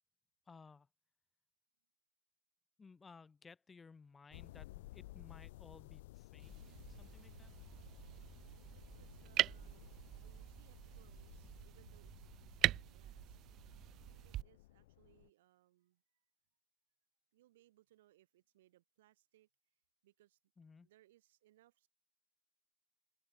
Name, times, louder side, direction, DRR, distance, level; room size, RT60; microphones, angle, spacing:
voice 1, 0.5-0.9 2.8-7.5 20.6-20.9, left 4 dB, 15° left, 0.8 m, -59 dB
sound 1, 4.3-15.3, left 18 dB, 70° left, 0.3 m, -57 dB
sound 2, 6.4-14.4, right 14 dB, 35° right, 0.3 m, -41 dB
voice 2, 8.7-9.9 10.2-13.5 14.2-16.2 17.3-19.5 20.0-20.4 20.8-21.9, right 15 dB, 85° right, 2.4 m, -70 dB
open air
supercardioid pair, 155°, 0 cm